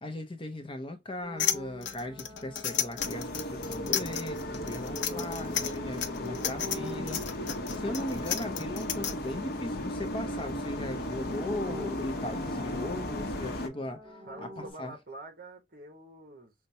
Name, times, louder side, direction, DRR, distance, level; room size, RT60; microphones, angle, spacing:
voice 1, 0.0-7.2 7.7-14.0 14.6-15.0, left 1 dB, 30° left, 0.6 m, -38 dB
sound 1, 1.2-4.1 4.8-9.6 9.9-14.7, equal, 35° right, 2.0 m, -47 dB
sound 2, 1.4-9.1, left 9 dB, 85° left, 0.6 m, -32 dB
sound 3, 3.0-13.7, left 1 dB, 60° left, 0.8 m, -36 dB
voice 2, 14.3-16.5, right 2 dB, 55° right, 1.2 m, -46 dB
5.4 x 2.2 x 2.7 m
head